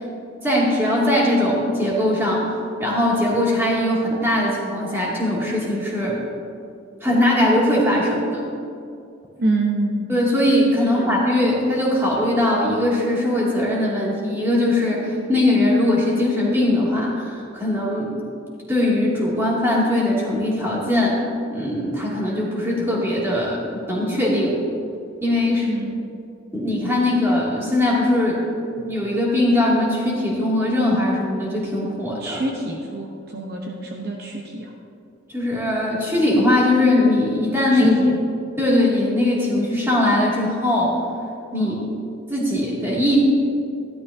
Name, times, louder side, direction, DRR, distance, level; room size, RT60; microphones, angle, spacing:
voice 1, 0.4-6.2 7.0-8.5 10.1-18.2 18.7-21.2 21.5-24.5 25.2-25.7 26.5-28.4 28.7-32.4 35.3-38.0 38.6-41.0 41.5-41.7 42.3-43.2, left 1 dB, 10° right, -6 dB, 2.4 m, -20 dB
voice 2, 9.4-10.1 11.0-11.2 25.7-26.1 32.2-34.7 37.7-38.1 41.5-41.8, right 2 dB, 50° right, 0 dB, 0.8 m, -26 dB
14.0 x 12.0 x 2.7 m, 2.4 s
head